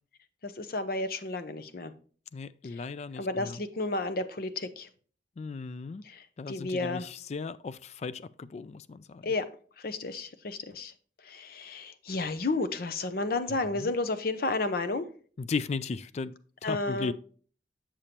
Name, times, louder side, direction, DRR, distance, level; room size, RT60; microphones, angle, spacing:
voice 1, 0.4-1.9 2.8-2.9 3.2-4.9 6.1-7.1 9.2-9.5 9.8-10.9 11.2-15.1 16.6-17.1, left 2 dB, 55° left, 0.7 m, -32 dB
voice 2, 2.3-3.6 5.4-6.0 6.4-9.3 13.8-13.9 15.4-16.3 16.6-17.1, left 4 dB, 40° left, 0.3 m, -36 dB
7.4 x 6.8 x 2.9 m
head